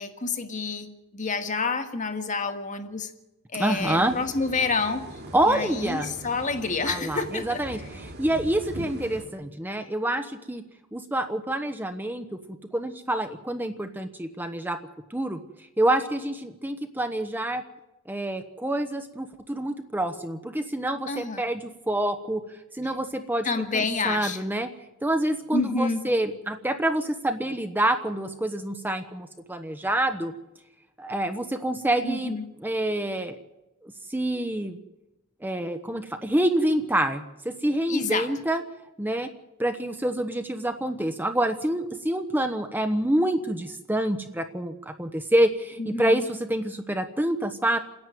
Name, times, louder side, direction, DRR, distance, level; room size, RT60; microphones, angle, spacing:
voice 1, 0.0-3.1 3.5-5.1 5.5-7.6 21.1-21.4 23.4-24.4 25.5-26.1 32.0-32.4 37.9-38.3 45.8-46.2, left 4 dB, 35° left, 7 dB, 1.8 m, -28 dB
voice 2, 3.6-4.1 5.3-6.1 6.9-10.6 10.9-12.3 12.7-14.8 15.1-15.4 15.8-17.6 18.1-22.4 22.7-23.5 23.7-24.7 25.0-30.3 31.0-33.4 33.8-34.8 35.4-38.6 39.0-39.3 39.6-47.8, right 1 dB, 10° right, 7 dB, 1.0 m, -27 dB
sound 1, 3.8-9.3, right 1 dB, 50° right, 2.7 m, -41 dB
28.5 x 10.5 x 9.3 m, 0.97 s
head